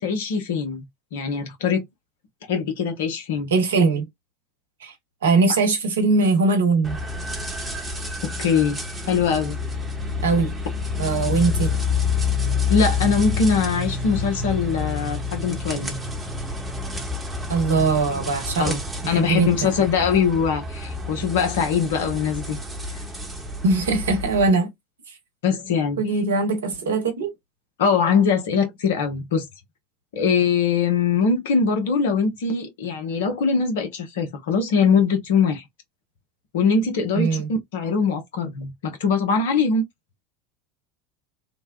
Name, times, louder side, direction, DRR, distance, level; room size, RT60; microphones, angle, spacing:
voice 1, 0.0-0.8 1.1-1.8 2.5-3.5 8.2-8.8 9.1-9.6 12.7-16.0 18.6-22.6 25.4-26.0 27.8-29.5 30.1-35.6 36.5-39.8, left 5 dB, 65° left, 0.8 m, -22 dB
voice 2, 3.5-4.1 4.8-4.9 5.2-7.0 10.2-10.5 11.0-11.7 17.5-18.8 19.0-19.7 23.6-24.7 26.0-27.3 37.1-37.5, right 3 dB, 75° right, 0.9 m, -21 dB
sound 1, 6.8-24.5, left 4 dB, 15° right, 1.0 m, -28 dB
3.1 x 2.1 x 2.3 m
figure-of-eight pair, 75°, 0 cm